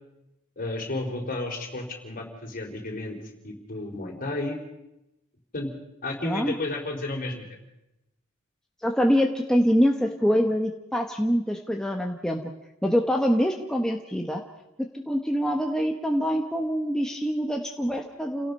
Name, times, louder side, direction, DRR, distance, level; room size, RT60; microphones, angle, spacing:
voice 1, 0.6-3.2 3.4-4.6 5.5-5.7 6.0-7.4, left 2 dB, 40° left, 2 dB, 4.2 m, -32 dB
voice 2, 6.2-6.5 8.8-12.4 12.8-14.4 14.8-18.5, equal, 5° left, 1 dB, 1.2 m, -25 dB
29.5 x 17.5 x 5.5 m, 0.91 s
head